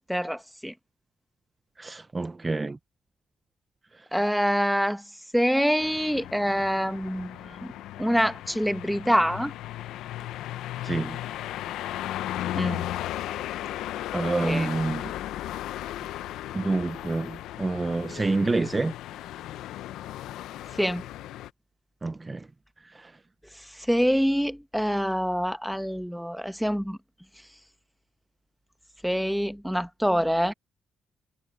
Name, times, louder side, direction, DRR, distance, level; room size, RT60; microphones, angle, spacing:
voice 1, 0.1-0.7 4.1-5.0 5.3-7.7 8.0-9.5 12.5-12.8 14.1-14.7 20.7-21.1 23.7-27.0 29.0-30.5, equal, ahead, 1.2 m, -26 dB
voice 2, 1.8-2.8 3.9-4.1 10.8-11.2 14.1-15.1 16.5-18.9 22.0-22.5 22.8-23.1, right 3 dB, 20° right, 0.6 m, -28 dB
sound 1, 5.8-21.5, left 13 dB, 85° left, 0.6 m, -36 dB
cardioid pair, 90°, 0 cm